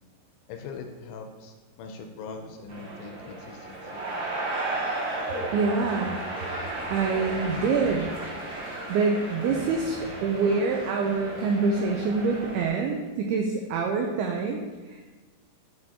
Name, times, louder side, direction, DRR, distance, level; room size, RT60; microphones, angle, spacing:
voice 1, 0.5-4.0, left 4 dB, 80° left, 4 dB, 2.5 m, -41 dB
sound 1, 2.7-12.7, right 2 dB, 40° right, 2.8 m, -34 dB
voice 2, 5.5-6.2 6.9-8.1 8.9-15.0, right 4 dB, 85° right, 2 dB, 2.2 m, -26 dB
11.5 x 4.6 x 2.8 m, 1.3 s
omnidirectional pair, 5.1 m